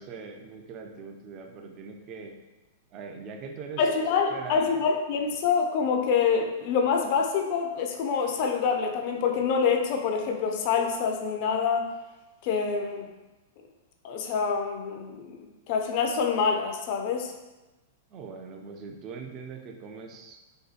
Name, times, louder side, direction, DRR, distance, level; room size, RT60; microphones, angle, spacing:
voice 1, 0.0-2.3 2.9-3.8 4.3-4.6 18.1-20.6, right 5 dB, 40° right, 3 dB, 0.3 m, -41 dB
voice 2, 3.8-11.9 12.4-13.1 14.0-17.3, left 6 dB, 50° left, 3 dB, 0.4 m, -26 dB
2.6 x 2.2 x 2.4 m, 1.1 s
hypercardioid pair, 115°, 0 cm